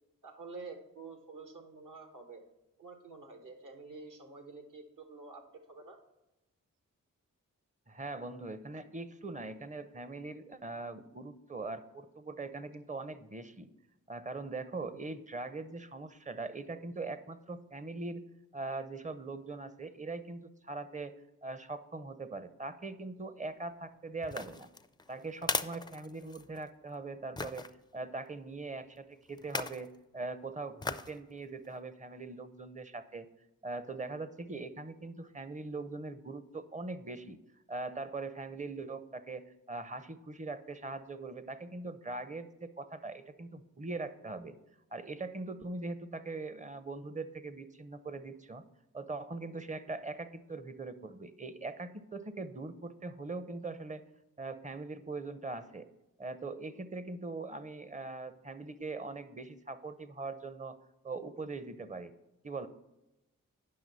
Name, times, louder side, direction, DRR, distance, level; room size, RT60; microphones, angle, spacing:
voice 1, 0.2-2.4 2.8-6.0, right 3 dB, 70° right, 5 dB, 1.4 m, -48 dB
voice 2, 7.9-13.7 14.1-18.2 18.5-24.7 25.1-33.3 33.6-37.4 37.7-44.5 44.9-48.6 48.9-54.0 54.4-55.9 56.2-60.8 61.0-62.1 62.4-62.7, right 3 dB, 20° right, 13 dB, 0.7 m, -41 dB
sound 1, 24.2-26.7 27.4-27.7 29.4-29.9 30.8-31.2 31.7-31.8, left 3 dB, 15° left, 0.4 m, -37 dB
9.4 x 5.8 x 4.1 m, 0.94 s
supercardioid pair, 40°, 33 cm